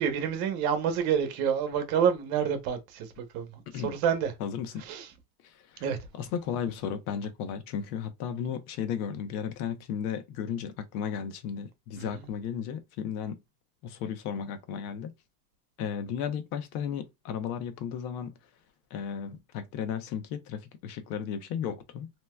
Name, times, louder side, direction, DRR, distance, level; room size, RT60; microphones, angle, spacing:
voice 1, 0.0-3.5 3.7-4.3 4.8-5.1 5.8-6.0 11.9-12.2, right 7 dB, 60° right, 1.0 m, -28 dB
voice 2, 3.7-4.0 4.4-4.8 5.4-5.8 6.1-13.4 13.8-15.1 15.8-18.3 18.9-22.1, left 8 dB, 85° left, 0.8 m, -34 dB
3.3 x 2.8 x 2.2 m
cardioid pair, 165°, 44 cm